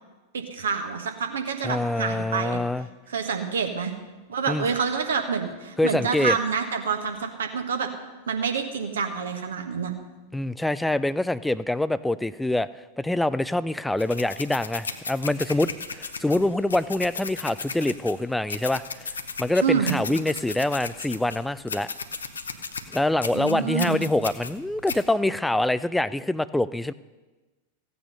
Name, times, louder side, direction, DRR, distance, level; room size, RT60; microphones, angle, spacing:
voice 1, 0.3-2.6 3.1-3.9 4.3-7.9 8.3-9.9 19.6-19.9 23.3-24.0, right 6 dB, 65° right, 5 dB, 1.5 m, -27 dB
voice 2, 1.6-2.9 4.5-4.6 5.8-6.4 10.3-12.7 13.0-19.1 19.4-21.9 22.9-26.9, left 1 dB, 5° left, 16 dB, 0.4 m, -25 dB
sound 1, 14.0-25.0, left 4 dB, 75° left, 0.8 m, -36 dB
15.5 x 8.7 x 5.4 m, 1.2 s
figure-of-eight pair, 90°, 0 cm